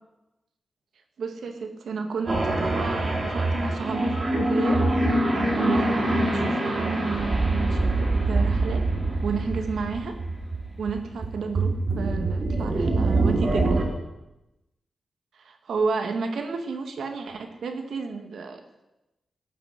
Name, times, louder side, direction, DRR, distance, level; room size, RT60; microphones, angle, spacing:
voice 1, 1.2-4.8 5.5-8.9 9.2-10.1 10.8-13.8 15.3-18.6, right 4 dB, 80° right, 5 dB, 1.9 m, -31 dB
sound 1, 2.3-13.8, right 2 dB, 35° right, 4.6 m, -24 dB
18.5 x 7.5 x 9.6 m, 0.98 s
wide cardioid pair, 155°, 0 cm